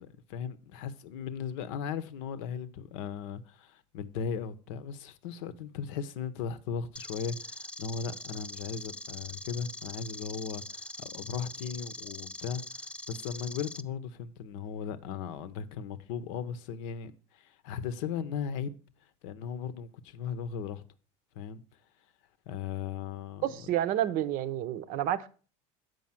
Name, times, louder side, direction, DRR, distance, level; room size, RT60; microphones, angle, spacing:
voice 1, 0.0-18.8 19.2-20.8 21.3-21.6 22.5-23.5, left 7 dB, 70° left, 0.7 m, -37 dB
sound 1, 7.0-13.8, left 1 dB, 5° left, 0.3 m, -43 dB
voice 2, 23.4-25.3, right 12 dB, 60° right, 0.7 m, -29 dB
7.6 x 5.2 x 5.7 m
hypercardioid pair, 85°, 17 cm